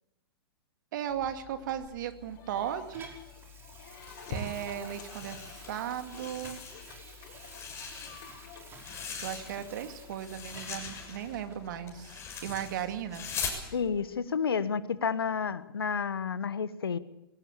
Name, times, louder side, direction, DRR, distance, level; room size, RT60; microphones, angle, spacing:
voice 1, 0.9-3.1 4.3-6.6 9.2-13.3, right 10 dB, 55° right, 8 dB, 2.4 m, -36 dB
sound 1, 1.1-14.0, left 5 dB, 45° left, 6.0 m, -48 dB
Water tap faucet / Sink (filling or washing), 1.7-11.0 11.5-11.6, right 4 dB, 20° right, 5.5 m, -53 dB
sound 2, 4.0-5.7 6.0-7.0 7.3-9.8 10.1-13.6, left 6 dB, 20° left, 6.9 m, -41 dB
voice 2, 13.7-17.0, left 6 dB, 75° left, 15 dB, 1.4 m, -30 dB
22.5 x 18.0 x 8.6 m, 0.91 s
figure-of-eight pair, 115°, 13 cm